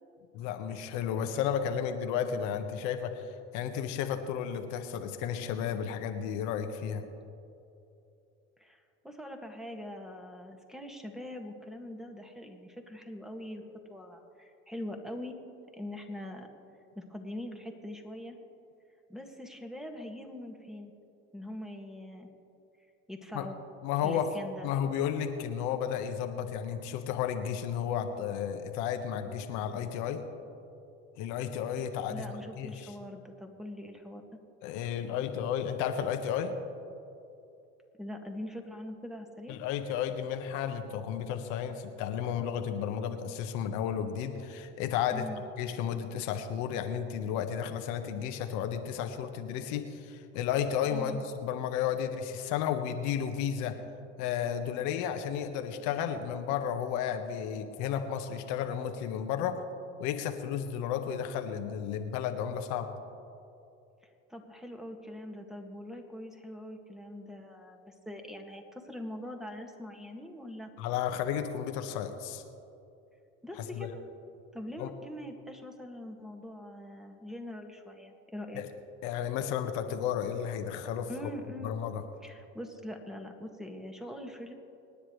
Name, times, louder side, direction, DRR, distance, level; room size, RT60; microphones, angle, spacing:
voice 1, 0.3-7.0 23.3-23.5 23.8-24.3 24.6-30.2 31.2-32.9 34.6-36.6 39.5-45.3 45.6-53.8 54.2-59.6 60.0-62.9 70.8-72.4 73.8-73.9 74.8-74.9 78.5-78.7 79.0-81.1 81.6-82.0, left 8 dB, 75° left, 7 dB, 1.3 m, -33 dB
voice 2, 8.6-13.6 13.9-15.3 15.7-16.5 17.0-18.4 19.1-20.9 21.3-22.3 23.1-23.6 24.0-24.7 32.1-34.2 38.0-39.6 45.1-45.4 50.9-51.2 64.3-70.7 73.4-74.0 74.5-78.6 81.1-81.7 82.2-84.5, left 1 dB, ahead, 3 dB, 1.9 m, -43 dB
26.5 x 10.0 x 3.3 m, 2.8 s
supercardioid pair, 85°, 30 cm